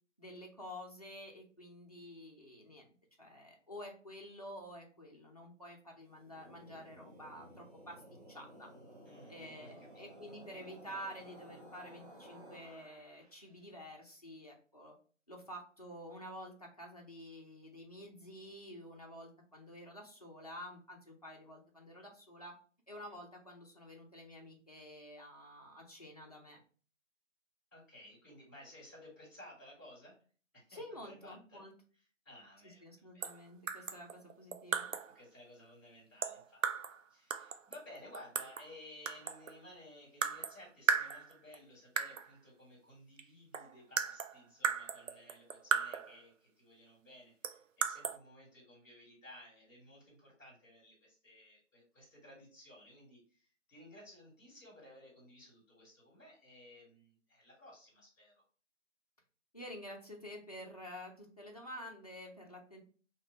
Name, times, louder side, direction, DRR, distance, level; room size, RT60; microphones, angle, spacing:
voice 1, 0.2-2.9 3.2-8.0 8.3-8.7 9.3-14.9 15.3-22.5 22.9-26.6 30.7-31.7 32.6-34.9 59.5-62.8, equal, 30° left, -1 dB, 0.6 m, -50 dB
sound 1, 6.1-13.4, equal, 30° right, 0.9 m, -55 dB
voice 2, 9.0-10.0 27.7-30.2 30.5-31.6 31.9-32.8 33.1-33.3 35.1-36.6 37.1-58.4, left 1 dB, 15° left, -6 dB, 1.7 m, -56 dB
sound 2, 33.2-33.4 33.7-35.1 36.2-37.0 37.3-38.7 39.1-39.6 40.2-40.6 40.9-41.6 42.0-42.3 43.2-43.3 43.5-46.2 47.4-48.2, right 6 dB, 80° right, 0.5 m, -36 dB
3.2 x 2.9 x 2.8 m, 0.40 s
figure-of-eight pair, 155°, 38 cm